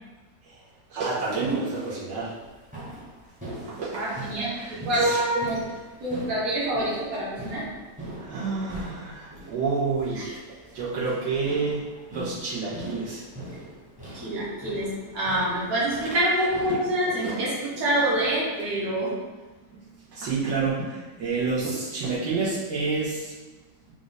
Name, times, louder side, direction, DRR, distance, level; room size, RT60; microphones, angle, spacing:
voice 1, 0.9-2.4 3.6-5.2 8.2-11.8 12.1-13.2 17.2-17.5 19.7-23.3, right 4 dB, 80° right, -8 dB, 1.6 m, -29 dB
sound 1, 2.3-16.9, right 1 dB, 10° right, 0.6 m, -42 dB
voice 2, 3.9-5.6 6.0-7.6 14.1-19.1, right 1 dB, 55° right, -7 dB, 1.6 m, -26 dB
3.8 x 2.5 x 3.9 m, 1.2 s
omnidirectional pair, 1.8 m